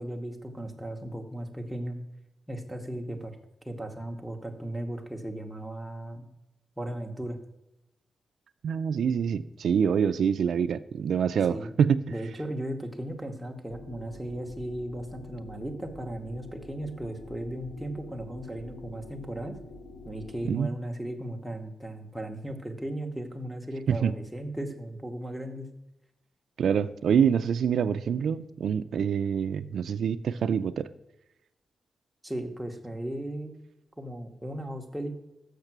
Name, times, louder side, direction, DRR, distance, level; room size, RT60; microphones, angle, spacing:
voice 1, 0.0-2.0 2.5-3.4 3.6-6.2 6.8-7.4 11.5-11.7 12.1-19.6 20.0-25.7 32.2-33.6 34.0-35.2, right 1 dB, 5° right, 3 dB, 0.9 m, -36 dB
voice 2, 8.6-12.0 20.5-20.7 23.9-24.1 26.6-30.9, right 7 dB, 80° right, 11 dB, 0.3 m, -26 dB
sound 1, 13.7-20.6, left 2 dB, 90° left, 1.0 m, -47 dB
6.6 x 6.6 x 5.9 m, 0.93 s
wide cardioid pair, 160°, 0 cm